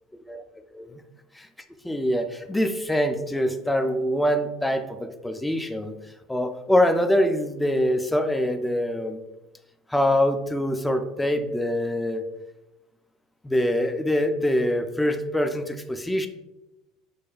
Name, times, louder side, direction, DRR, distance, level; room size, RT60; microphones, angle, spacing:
voice 1, 1.8-5.9 6.3-9.2 9.9-12.2 13.4-16.3, equal, 10° left, 6 dB, 0.4 m, -24 dB
6.3 x 2.2 x 2.3 m, 0.98 s
hypercardioid pair, 80°, 0 cm